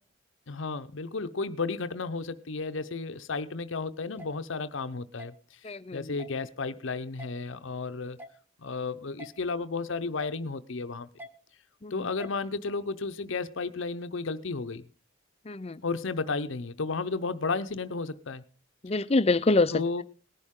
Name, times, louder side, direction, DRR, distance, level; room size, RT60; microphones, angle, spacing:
voice 1, 0.5-5.3 5.9-8.2 8.6-11.1 11.9-14.8 15.8-18.4 19.7-20.0, left 4 dB, 65° left, 0.7 m, -33 dB
sound 1, 4.2-4.3 5.2-5.3 6.2-6.4 7.2-7.3 8.2-8.4 9.2-9.3 10.2-10.4 11.2-11.3 12.2-12.4, equal, 10° right, 1.1 m, -44 dB
voice 2, 5.6-6.2 11.8-12.1 15.4-15.8 18.8-20.0, left 3 dB, 30° left, 0.5 m, -26 dB
19.0 x 11.0 x 3.7 m
head